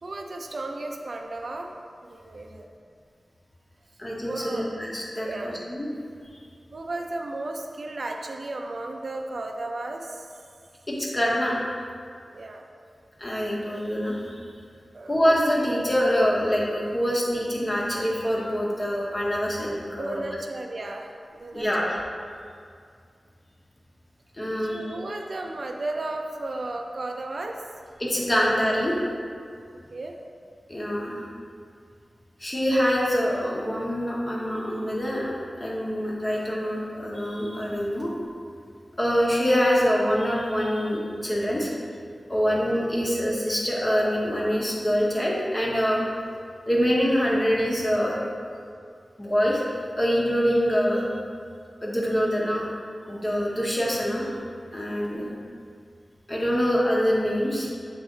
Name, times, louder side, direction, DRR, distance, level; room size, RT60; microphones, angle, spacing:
voice 1, 0.0-1.7 2.0-2.7 4.2-4.7 5.2-5.6 6.7-10.3 12.3-12.6 14.9-15.2 20.0-21.9 24.6-27.6 29.9-30.2 42.5-42.6 54.9-55.0, right 2 dB, 60° right, 2 dB, 0.5 m, -34 dB
voice 2, 4.0-5.9 6.3-6.4 10.9-11.6 13.2-14.4 15.1-20.2 21.5-22.0 24.4-25.1 28.0-29.0 30.7-31.2 32.4-38.1 39.0-41.7 42.3-46.0 46.7-48.2 49.2-49.6 49.9-51.1 51.8-52.7 53.1-54.3 54.7-55.3 56.3-57.7, equal, 30° left, -4 dB, 1.2 m, -25 dB
7.3 x 3.3 x 3.9 m, 2.2 s
wide cardioid pair, 90°, 0 cm